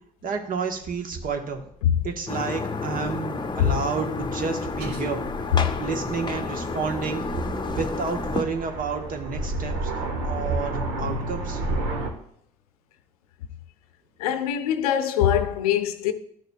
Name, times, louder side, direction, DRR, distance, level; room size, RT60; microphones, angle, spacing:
voice 1, 0.2-1.7 2.0-5.2 5.6-7.3 7.7-9.9 10.2-11.6, right 5 dB, 45° right, 1.2 m, -30 dB
sound 1, 2.3-8.4, left 4 dB, 25° left, 0.8 m, -31 dB
Aircraft, 2.8-12.1, right 2 dB, 70° right, 1.4 m, -32 dB
voice 2, 11.0-11.3 14.2-16.1, left 10 dB, 80° left, 0.7 m, -23 dB
12.0 x 6.5 x 2.3 m
hypercardioid pair, 55°, 19 cm